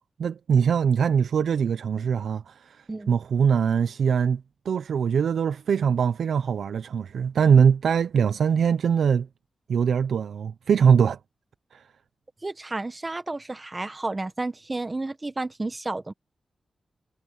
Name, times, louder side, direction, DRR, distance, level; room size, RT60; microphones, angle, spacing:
voice 1, 0.2-9.3 9.7-11.2 11.7-11.9, right 7 dB, 90° right, 0.5 m, -22 dB
voice 2, 12.4-16.1, right 2 dB, 20° right, 1.2 m, -31 dB
wide cardioid pair, 140°, 0 cm